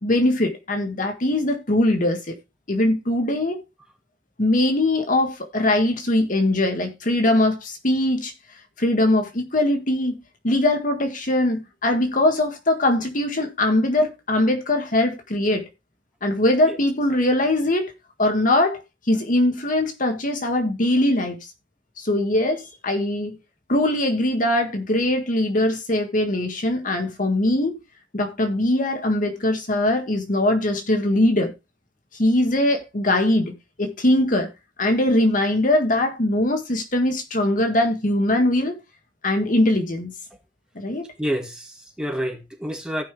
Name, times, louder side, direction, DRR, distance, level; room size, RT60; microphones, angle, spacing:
voice 1, 0.0-2.3 2.7-3.6 4.4-8.3 8.8-10.2 10.4-15.6 16.2-17.9 18.2-18.8 19.1-21.4 22.0-23.4 23.7-27.8 28.1-31.5 32.2-33.5 33.8-34.5 34.8-38.8 39.2-40.1 40.7-41.1, left 1 dB, 50° left, 1.7 m, -21 dB
voice 2, 41.2-43.0, equal, 5° right, 2.1 m, -28 dB
16.0 x 5.6 x 3.4 m
head